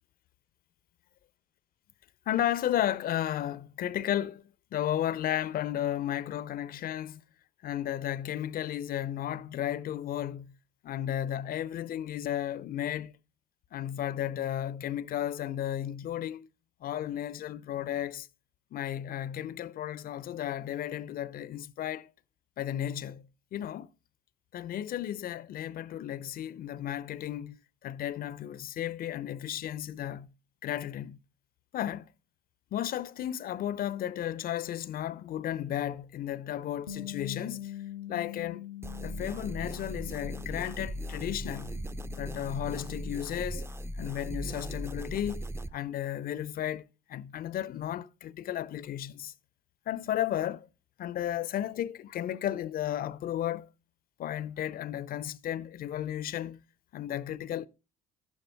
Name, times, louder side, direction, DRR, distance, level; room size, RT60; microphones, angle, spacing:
voice 1, 2.3-4.4 4.7-7.2 7.6-10.6 10.8-13.1 13.7-16.5 16.8-18.3 18.7-22.1 22.6-23.9 24.5-30.3 30.6-31.2 31.7-32.1 32.7-37.7 38.1-38.6 39.0-41.8 42.2-43.7 44.0-49.3 49.9-50.7 51.0-53.7 54.2-56.6 56.9-57.7, left 11 dB, 50° left, 0.6 m, -34 dB
Bass guitar, 36.9-43.1, left 12 dB, 85° left, 0.6 m, -44 dB
sound 1, 38.8-45.7, right 1 dB, 15° right, 0.6 m, -38 dB
12.0 x 11.5 x 2.2 m
figure-of-eight pair, 50°, 20 cm